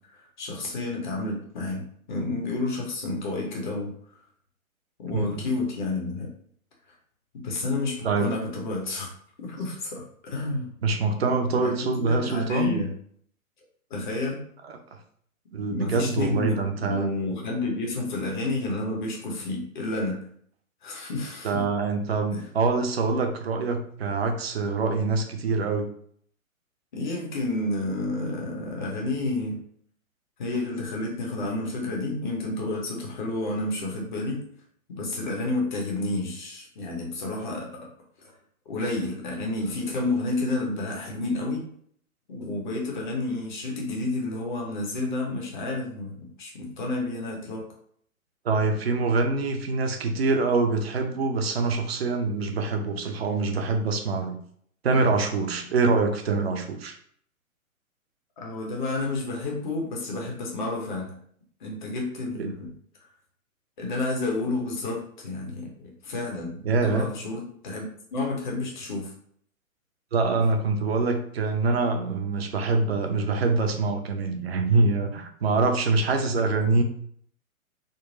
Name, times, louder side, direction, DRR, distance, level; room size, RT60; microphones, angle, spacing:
voice 1, 0.1-3.9 5.0-6.3 7.3-9.1 9.4-10.7 11.6-12.9 13.9-14.4 15.7-20.3 20.8-21.6 22.3-22.5 26.9-29.6 30.4-34.4 34.9-37.9 38.7-41.6 42.3-47.6 58.4-61.2 61.6-62.7 63.8-67.8 68.1-69.1, left 2 dB, 35° left, -1 dB, 0.8 m, -30 dB
voice 2, 10.8-12.8 14.6-14.7 15.5-17.1 21.4-25.9 48.4-54.4 54.8-57.0 62.3-62.5 66.6-67.1 70.1-76.8, right 3 dB, 45° right, 5 dB, 0.5 m, -25 dB
3.8 x 2.1 x 2.6 m, 0.62 s
figure-of-eight pair, 125°, 43 cm